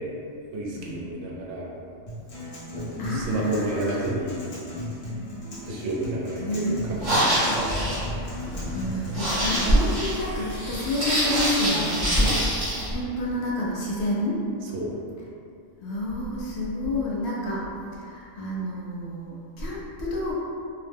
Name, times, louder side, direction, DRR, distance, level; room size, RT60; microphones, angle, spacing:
voice 1, 0.5-1.7 2.7-4.4 5.6-7.5 12.2-12.5 14.7-15.0, right 2 dB, 75° right, -3 dB, 0.9 m, -30 dB
Acoustic guitar, 2.1-10.1, equal, 35° left, 0.6 m, -36 dB
voice 2, 3.0-4.1 6.4-6.8 8.2-12.2 12.9-14.4 15.8-20.3, equal, 65° left, -5 dB, 0.8 m, -28 dB
sound 1, 6.9-12.9, equal, 40° right, 1.0 m, -26 dB
2.7 x 2.1 x 3.3 m, 2.5 s
omnidirectional pair, 1.3 m